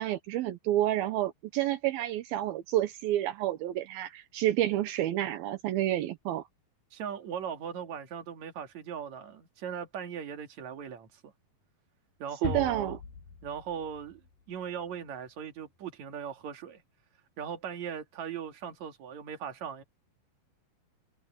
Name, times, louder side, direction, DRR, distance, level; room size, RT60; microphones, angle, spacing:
voice 1, 0.0-6.5 12.4-13.0, right 13 dB, 80° right, 2.8 m, -29 dB
voice 2, 6.9-11.3 12.2-12.9 13.4-14.2 14.5-16.8 17.4-19.8, right 8 dB, 50° right, 3.3 m, -39 dB
sound 1, 12.4-14.9, left 4 dB, 75° left, 7.0 m, -40 dB
omnidirectional pair, 4.4 m